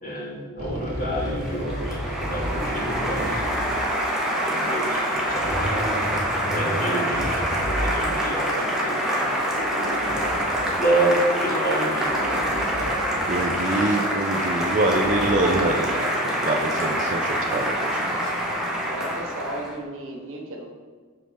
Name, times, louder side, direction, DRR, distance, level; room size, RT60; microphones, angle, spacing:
voice 1, 0.0-2.0 2.3-3.3 4.4-5.7 6.5-7.3 7.7-9.3 10.8-12.1, right 1 dB, 40° left, -4 dB, 1.6 m, -28 dB
sound 1, 0.6-3.8 5.1-8.6 9.3-10.9 11.6-13.5 13.8-13.9 14.2-15.8, equal, 90° right, 1.2 m, -32 dB
Applause, 0.9-19.8, equal, 5° right, 0.8 m, -26 dB
voice 2, 13.3-18.2, right 2 dB, 35° right, 2 dB, 0.4 m, -25 dB
voice 3, 18.7-20.7, right 1 dB, 60° right, 0 dB, 1.0 m, -35 dB
5.6 x 5.2 x 3.3 m, 1.5 s
head